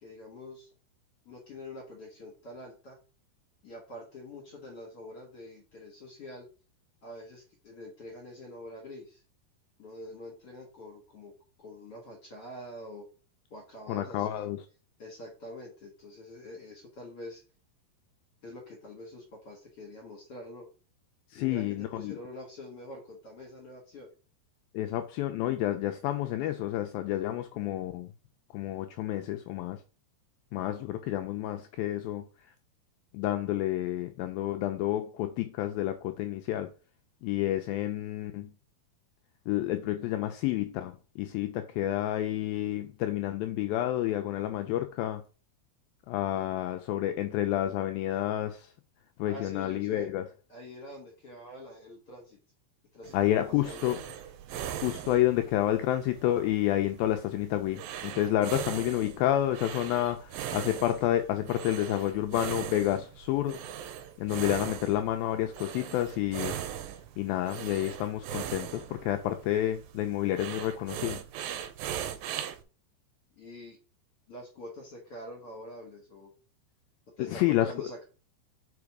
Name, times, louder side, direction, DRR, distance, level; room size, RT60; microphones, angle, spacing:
voice 1, 0.0-0.7 1.2-3.0 3.6-6.5 7.0-9.2 9.8-11.3 11.6-13.1 13.5-14.5 15.0-17.4 18.4-20.7 21.3-24.1 49.3-50.1 50.5-52.4 52.9-54.0 73.4-73.8 74.3-76.3 77.2-78.0, left 1 dB, 50° left, 1.9 m, -45 dB
voice 2, 13.9-14.6 21.3-22.2 24.7-28.1 28.5-29.8 30.5-32.3 33.1-36.7 37.2-38.5 39.5-45.2 46.1-48.7 49.2-50.2 53.1-54.0 54.8-63.6 64.2-66.6 67.2-71.2 77.3-77.7, left 13 dB, 85° left, 2.1 m, -29 dB
sound 1, 53.0-72.6, right 10 dB, 80° right, 2.1 m, -40 dB
5.1 x 4.9 x 4.8 m
omnidirectional pair, 4.7 m